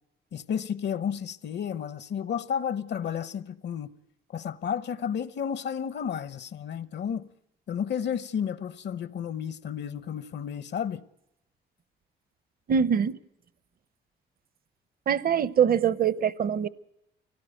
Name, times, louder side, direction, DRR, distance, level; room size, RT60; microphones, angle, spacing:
voice 1, 0.3-3.9 4.3-7.3 7.7-11.0, left 8 dB, 60° left, 0.9 m, -32 dB
voice 2, 12.7-13.2 15.1-16.7, right 8 dB, 50° right, 0.8 m, -23 dB
23.5 x 17.5 x 9.1 m
cardioid pair, 90°, 20 cm